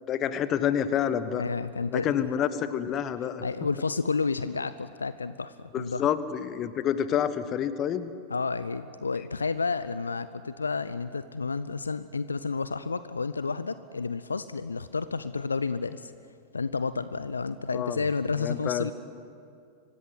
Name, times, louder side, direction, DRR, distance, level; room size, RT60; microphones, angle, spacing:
voice 1, 0.1-1.4 1.9-3.4 5.7-8.1 17.7-18.0 18.4-18.9, left 9 dB, 30° left, 13 dB, 1.4 m, -28 dB
voice 2, 1.3-2.1 3.4-6.1 8.3-16.1 16.5-18.9, left 4 dB, 75° left, 14 dB, 0.6 m, -31 dB
25.5 x 17.0 x 9.5 m, 2.3 s
figure-of-eight pair, 90°, 0 cm